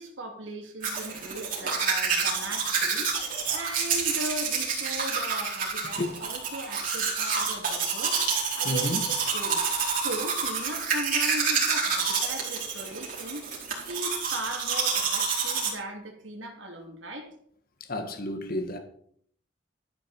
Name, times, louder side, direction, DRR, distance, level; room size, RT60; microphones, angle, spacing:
voice 1, 0.0-9.6 9.9-13.6 13.9-17.3, right 1 dB, 90° right, 3.1 m, -38 dB
Domestic sounds home sounds, 0.8-15.7, right 5 dB, 50° right, 5.0 m, -28 dB
voice 2, 8.6-9.1 17.8-18.8, left 1 dB, 50° left, 1.5 m, -31 dB
13.0 x 10.5 x 4.5 m
head